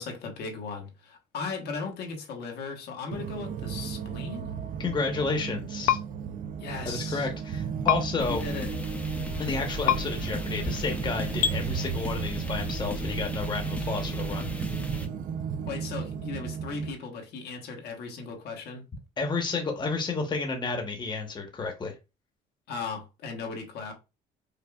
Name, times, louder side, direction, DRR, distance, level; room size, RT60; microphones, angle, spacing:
voice 1, 0.0-4.5 6.6-7.3 8.3-8.7 15.7-18.8 22.7-23.9, left 4 dB, 75° left, 1.1 m, -37 dB
sound 1, 3.1-16.9, right 7 dB, 55° right, 0.4 m, -34 dB
voice 2, 4.8-6.0 6.8-8.4 9.4-14.5 19.2-21.9, left 4 dB, 25° left, 1.0 m, -31 dB
sound 2, 5.9-6.0 7.9-8.0 9.9-10.0 11.4-11.6, left 10 dB, 55° left, 0.5 m, -22 dB
sound 3, 8.2-15.1, left 2 dB, 10° left, 0.6 m, -37 dB
5.0 x 2.3 x 2.3 m
cardioid pair, 110°, 17 cm